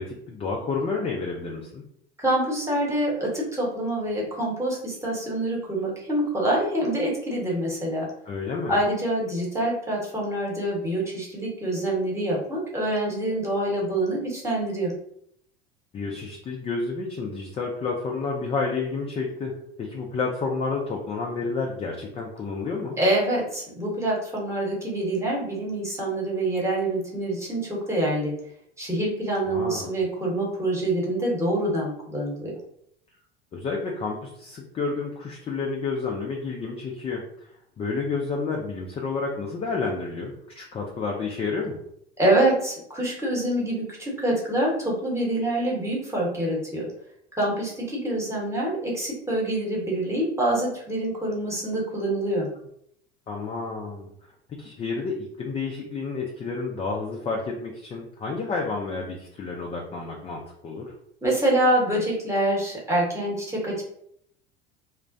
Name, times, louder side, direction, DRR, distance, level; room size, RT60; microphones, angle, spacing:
voice 1, 0.0-1.8 8.3-8.8 15.9-23.0 29.4-30.0 33.5-37.2 37.8-41.8 53.3-54.1 54.6-60.9, left 4 dB, 20° left, -1 dB, 0.3 m, -30 dB
voice 2, 2.2-8.1 8.7-14.9 23.0-28.3 28.8-32.5 42.2-46.9 47.3-52.5 61.2-63.8, right 1 dB, 10° right, -4 dB, 0.9 m, -26 dB
2.4 x 2.0 x 2.5 m, 0.71 s
figure-of-eight pair, 75°, 31 cm